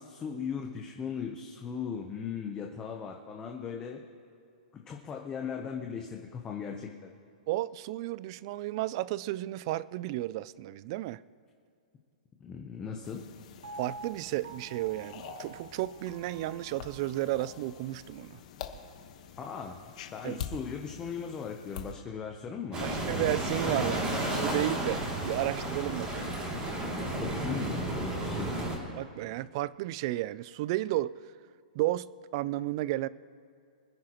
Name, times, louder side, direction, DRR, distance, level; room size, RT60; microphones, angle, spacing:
voice 1, 0.0-4.0 4.7-7.1 12.4-13.2 19.4-19.8 20.1-23.1 26.0-26.2 27.1-28.5, left 6 dB, 15° left, 2 dB, 0.8 m, -38 dB
voice 2, 7.5-11.2 13.8-18.4 20.2-20.4 22.8-26.3 29.0-31.1 31.8-32.1 32.3-33.1, right 16 dB, 35° right, 19 dB, 0.3 m, -33 dB
sound 1, 13.0-21.9, left 7 dB, 50° left, 1.2 m, -46 dB
Piano, 13.6-17.7 18.2-18.3, right 3 dB, 90° right, 1.9 m, -48 dB
sound 2, 22.7-28.8, right 1 dB, 20° right, 2.7 m, -32 dB
25.0 x 10.5 x 3.0 m, 2.4 s
hypercardioid pair, 165°, 5 cm